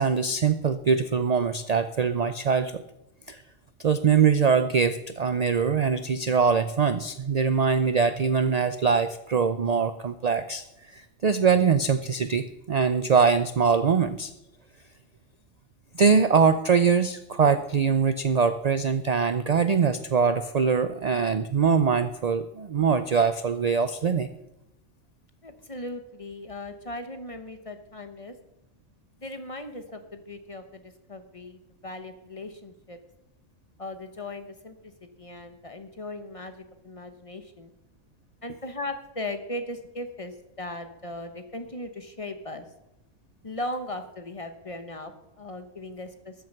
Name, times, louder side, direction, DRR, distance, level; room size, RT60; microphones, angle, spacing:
voice 1, 0.0-2.8 3.3-3.4 3.8-10.6 10.9-14.3 15.9-24.3, right 6 dB, 65° right, 11 dB, 0.4 m, -23 dB
voice 2, 25.4-28.3 29.2-33.0 33.8-34.9 35.2-37.7 38.4-42.6 43.4-46.3, left 1 dB, 30° left, 8 dB, 0.9 m, -38 dB
13.5 x 7.6 x 6.6 m, 0.87 s
omnidirectional pair, 1.4 m